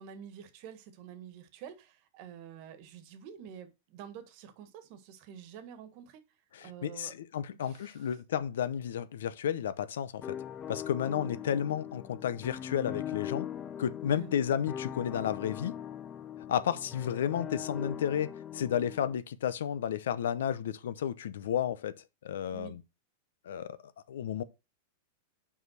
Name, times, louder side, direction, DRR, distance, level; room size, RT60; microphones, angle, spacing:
voice 1, 0.0-6.2 6.6-7.1 7.6-8.2 14.1-14.3 22.5-22.8, right 8 dB, 50° right, 1.4 m, -48 dB
voice 2, 6.5-10.4 10.7-13.5 13.8-15.7 16.5-21.9 22.2-22.8 23.5-23.7 24.1-24.4, left 9 dB, 80° left, 0.7 m, -32 dB
sound 1, 10.2-19.2, left 9 dB, 25° left, 0.6 m, -41 dB
5.5 x 5.0 x 6.3 m
hypercardioid pair, 130°, 0 cm